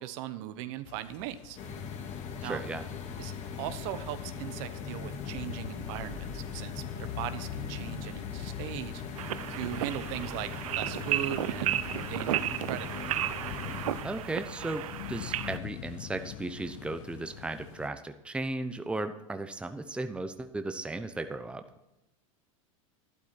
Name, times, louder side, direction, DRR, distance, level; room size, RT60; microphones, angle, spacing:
voice 1, 0.0-1.6 2.4-2.6 3.2-9.0 9.5-10.5 10.7-13.2, right 12 dB, 60° right, 11 dB, 1.2 m, -39 dB
sound 1, 0.9-17.9, left 13 dB, 60° left, 0.6 m, -45 dB
sound 2, 1.6-14.0, left 6 dB, 40° left, 2.2 m, -40 dB
voice 2, 2.4-2.8 14.0-21.6, right 2 dB, 5° right, 8 dB, 0.8 m, -36 dB
sound 3, 9.2-15.6, right 12 dB, 80° right, 0.6 m, -33 dB
12.0 x 11.5 x 4.4 m, 0.96 s
hypercardioid pair, 105°, 18 cm